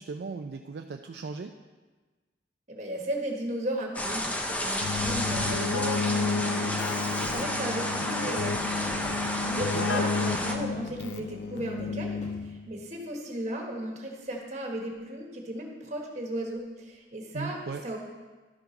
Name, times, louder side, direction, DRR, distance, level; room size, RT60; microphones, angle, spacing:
voice 1, 0.0-1.5 9.4-9.9 17.3-17.8, right 4 dB, 65° right, 4 dB, 0.4 m, -37 dB
voice 2, 2.7-17.6 17.8-18.0, right 1 dB, 40° right, 0 dB, 1.5 m, -36 dB
sound 1, 3.9-10.5, left 1 dB, 10° left, 0.6 m, -31 dB
sound 2, 4.2-4.5 6.9-7.1 7.6-7.7 8.6-9.3 9.6-9.9 10.4-11.3 11.6-12.6 14.1-15.2 15.7-15.8 16.5-16.9, equal, 40° left, 1.5 m, -49 dB
Keyboard (musical), 4.8-12.7, left 5 dB, 85° left, 0.4 m, -32 dB
12.5 x 4.8 x 5.3 m, 1.3 s
head